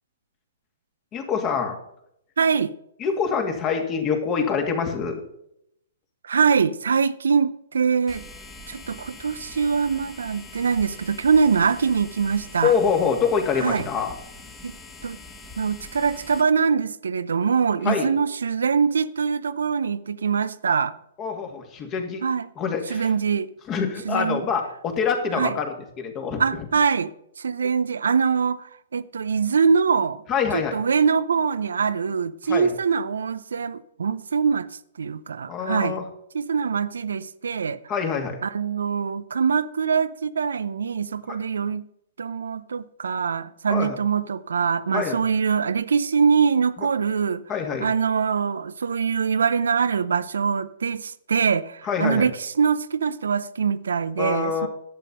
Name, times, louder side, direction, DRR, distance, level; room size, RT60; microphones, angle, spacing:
voice 1, 1.1-1.8 3.0-5.2 12.6-14.1 17.8-18.1 21.2-22.2 22.6-23.1 23.7-26.7 30.3-30.8 32.5-32.7 35.5-36.1 37.9-38.4 41.3-41.4 43.7-44.0 44.9-45.2 46.8-46.9 47.5-47.9 51.8-52.3 54.2-54.7, left 6 dB, 30° left, 2.4 m, -25 dB
voice 2, 2.4-2.7 6.2-8.2 8.7-12.7 13.6-13.8 14.6-14.8 15.0-15.2 15.6-20.9 22.2-22.5 22.9-23.5 24.1-24.4 25.3-25.6 26.4-30.2 30.5-34.7 35.0-36.0 36.3-37.8 38.4-41.8 42.2-47.4 47.8-54.7, right 6 dB, 75° right, 0.5 m, -23 dB
sound 1, 8.1-16.4, left 2 dB, 10° left, 1.8 m, -43 dB
11.0 x 8.3 x 5.4 m
figure-of-eight pair, 120°, 0 cm